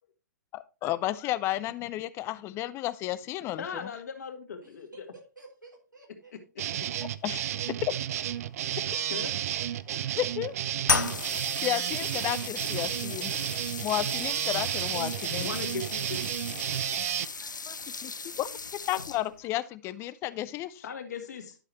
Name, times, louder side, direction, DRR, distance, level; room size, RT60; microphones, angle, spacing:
voice 1, 0.5-3.9 7.2-7.4 7.9-8.0 8.9-9.0 9.9-10.6 11.6-13.5 13.8-15.5 17.7-17.8 18.0-18.1 18.4-18.5 18.9-20.8, left 14 dB, 25° left, 0.5 m, -32 dB
voice 2, 3.6-4.9 6.3-6.4 9.0-9.3 15.4-16.2 20.8-21.6, left 5 dB, 60° left, 2.0 m, -38 dB
voice 3, 4.6-6.3 16.7-17.9, right 2 dB, 90° right, 3.7 m, -54 dB
sound 1, 6.6-17.3, right 11 dB, 55° right, 0.5 m, -32 dB
sound 2, 10.8-19.5, left 4 dB, 85° left, 0.5 m, -35 dB
11.0 x 6.5 x 2.9 m
figure-of-eight pair, 110°, 10 cm